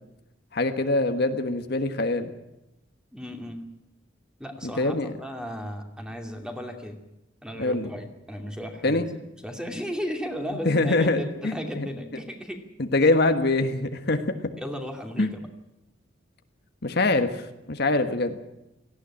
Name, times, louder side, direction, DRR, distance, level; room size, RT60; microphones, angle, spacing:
voice 1, 0.5-2.3 4.8-5.1 7.6-7.9 8.8-9.1 10.6-11.9 12.8-14.2 15.2-15.3 16.8-18.4, left 2 dB, 60° left, 7 dB, 1.4 m, -24 dB
voice 2, 3.1-3.7 4.4-7.0 7.4-9.0 9.4-12.6 14.6-15.4, equal, 5° right, 4 dB, 2.7 m, -35 dB
18.0 x 15.5 x 9.9 m, 0.90 s
head